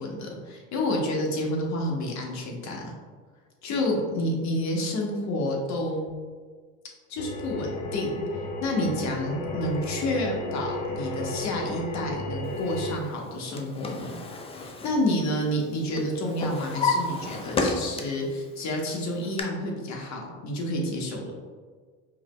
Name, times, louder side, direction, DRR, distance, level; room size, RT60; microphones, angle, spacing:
voice 1, 0.0-2.9 3.6-6.1 7.1-8.2 8.6-14.2 14.5-21.3, left 1 dB, 45° left, 0 dB, 1.1 m, -29 dB
sound 1, 7.2-13.0, left 1 dB, 70° left, 0.7 m, -34 dB
Drawer open or close, 13.2-15.7 16.0-18.3 18.7-19.4, left 3 dB, 15° left, 0.3 m, -31 dB
4.8 x 3.0 x 2.2 m, 1.5 s
supercardioid pair, 95°, 39 cm